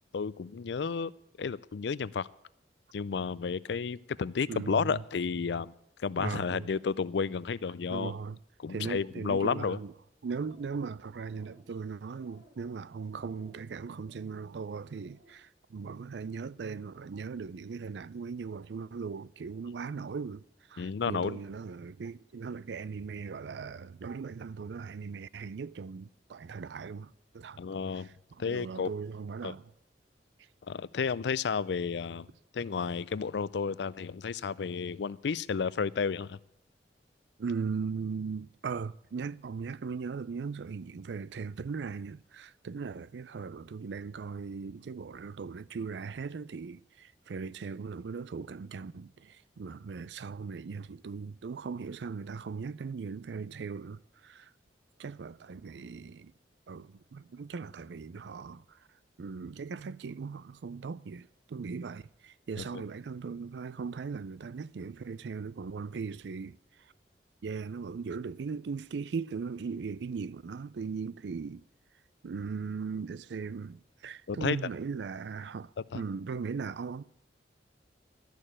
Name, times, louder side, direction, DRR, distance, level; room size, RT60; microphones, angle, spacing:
voice 1, 0.1-1.1 1.4-2.3 2.9-5.7 6.0-8.2 8.6-9.8 20.8-21.4 27.6-28.1 28.4-28.9 29.4-29.6 30.7-36.4 62.6-62.8 74.3-74.7 75.8-76.0, left 5 dB, 70° left, 0.4 m, -32 dB
voice 2, 4.5-5.0 6.2-6.7 7.9-8.4 8.7-9.9 10.2-20.4 20.7-27.6 28.5-29.6 37.4-54.5 55.0-56.3 56.7-58.6 59.2-66.6 67.4-71.6 72.2-77.0, right 5 dB, 75° right, 0.4 m, -38 dB
sound 1, 10.2-10.8 11.1-11.7 12.1-12.6 13.1-13.6 14.0-14.5 14.9-15.3, equal, 30° right, 2.8 m, -60 dB
13.0 x 6.6 x 10.0 m
head